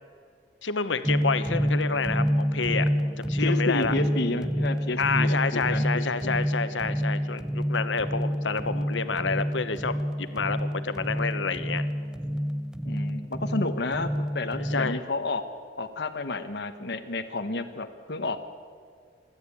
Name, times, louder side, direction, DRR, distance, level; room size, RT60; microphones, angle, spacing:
voice 1, 0.6-3.9 5.0-11.8 14.7-15.0, left 4 dB, 90° left, 11 dB, 1.2 m, -29 dB
sound 1, 1.0-15.0, equal, 5° right, 0.4 m, -28 dB
voice 2, 3.4-6.4 12.8-15.4 15.8-18.4, left 2 dB, 65° left, 6 dB, 1.2 m, -31 dB
27.0 x 12.0 x 8.7 m, 2.1 s
head